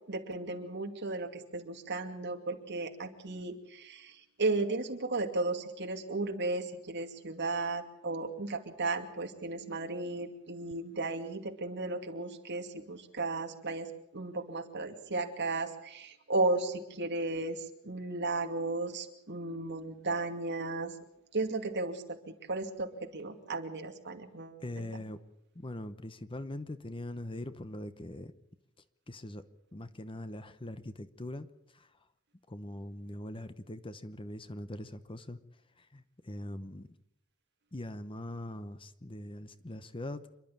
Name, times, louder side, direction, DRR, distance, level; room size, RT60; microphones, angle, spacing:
voice 1, 0.0-20.9 21.3-25.0, right 2 dB, 50° right, 4 dB, 2.5 m, -35 dB
voice 2, 24.6-25.2 25.6-28.3 29.1-29.4 29.7-31.5 32.5-35.4 35.9-36.0 36.3-36.9 37.7-40.2, left 1 dB, 25° left, 11 dB, 0.9 m, -41 dB
28.0 x 11.5 x 8.8 m, 0.84 s
head